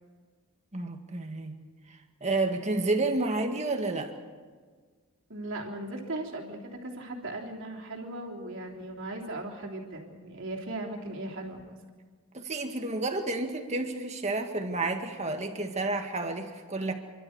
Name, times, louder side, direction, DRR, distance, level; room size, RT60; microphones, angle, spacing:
voice 1, 0.7-1.6 1.9-4.1 12.3-16.9, right 2 dB, 30° right, 4 dB, 2.0 m, -30 dB
voice 2, 5.3-11.8, right 2 dB, 55° right, 0 dB, 3.4 m, -38 dB
30.0 x 12.5 x 8.2 m, 1.5 s
head